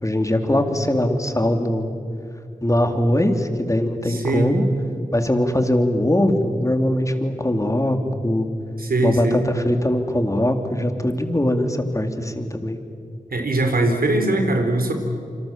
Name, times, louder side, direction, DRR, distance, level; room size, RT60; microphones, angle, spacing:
voice 1, 0.0-1.9 2.6-4.7 5.1-8.5 9.0-12.8, left 1 dB, 20° left, 5 dB, 3.2 m, -21 dB
voice 2, 4.0-4.5 8.8-9.5 13.3-14.9, right 2 dB, 80° right, 5 dB, 4.0 m, -21 dB
27.5 x 25.5 x 7.5 m, 2.4 s
cardioid pair, 50°, 15 cm